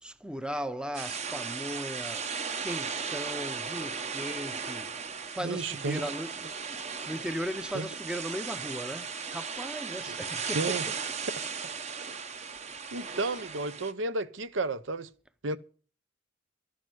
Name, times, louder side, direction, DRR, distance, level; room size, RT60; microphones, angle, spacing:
voice 1, 0.0-2.3 2.6-4.9 5.3-11.0 12.9-13.0, equal, 5° right, 0.7 m, -37 dB
sound 1, 0.9-13.9, right 5 dB, 35° right, 0.9 m, -36 dB
voice 2, 5.4-6.1 7.7-7.9 10.1-10.2 10.5-10.8 12.9-15.1 15.4-15.6, right 3 dB, 70° right, 0.8 m, -32 dB
12.0 x 9.9 x 7.8 m
head